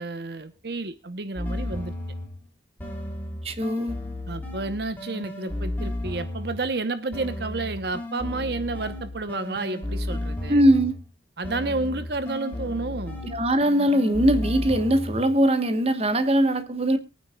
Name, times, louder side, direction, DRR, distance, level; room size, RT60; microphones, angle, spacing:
voice 1, 0.0-1.9 4.3-10.6 11.4-13.2, right 3 dB, 65° right, 0.9 m, -30 dB
sound 1, 1.4-2.4 2.8-6.8 7.1-11.1 11.4-15.4, left 1 dB, 10° left, 3.1 m, -33 dB
voice 2, 3.4-3.9 10.5-11.0 13.3-17.0, right 1 dB, 35° right, 1.2 m, -21 dB
23.0 x 9.4 x 2.3 m
head